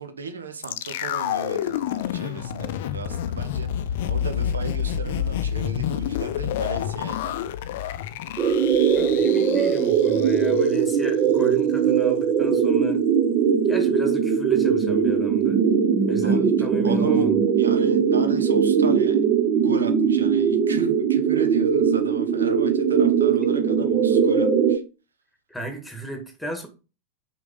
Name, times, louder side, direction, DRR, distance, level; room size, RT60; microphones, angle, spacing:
voice 1, 0.0-7.4 16.2-17.3 17.6-19.2 19.5-24.8, right 5 dB, 70° right, 1.1 m, -36 dB
sound 1, 0.6-10.8 11.0-11.1, left 10 dB, 55° left, 0.5 m, -29 dB
sound 2, 8.4-24.8, right 7 dB, 35° right, 0.9 m, -20 dB
voice 2, 9.0-13.0 13.7-15.6 16.1-17.4 25.5-26.7, right 1 dB, ahead, 1.9 m, -33 dB
6.1 x 5.2 x 3.7 m
figure-of-eight pair, 90°, 0 cm